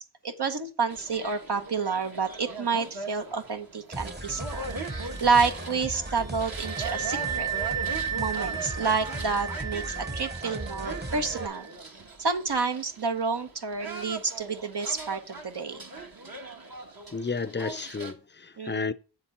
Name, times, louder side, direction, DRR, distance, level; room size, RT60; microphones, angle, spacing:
voice 1, 0.2-7.5 8.2-11.7 12.2-15.9 18.6-18.9, right 4 dB, 75° right, 1.0 m, -29 dB
sound 1, 0.9-18.1, right 3 dB, 55° right, 1.4 m, -40 dB
sound 2, 3.9-11.5, right 1 dB, 25° right, 1.0 m, -37 dB
Wind instrument woodwind instrument, 4.3-11.7, right 9 dB, 40° right, 0.4 m, -36 dB
voice 2, 17.1-18.9, left 4 dB, 25° left, 0.5 m, -32 dB
7.5 x 7.3 x 4.4 m
wide cardioid pair, 55°, 41 cm